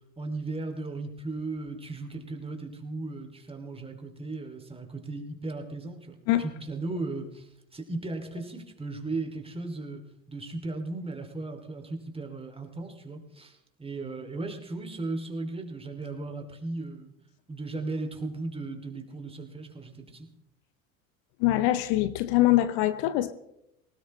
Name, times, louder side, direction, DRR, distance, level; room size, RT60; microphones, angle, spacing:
voice 1, 0.2-10.0 10.3-17.1 17.5-20.3, right 3 dB, 15° right, 2.9 m, -36 dB
voice 2, 21.4-23.3, left 15 dB, 65° left, 0.9 m, -23 dB
19.0 x 17.5 x 3.2 m
hypercardioid pair, 85°, 40 cm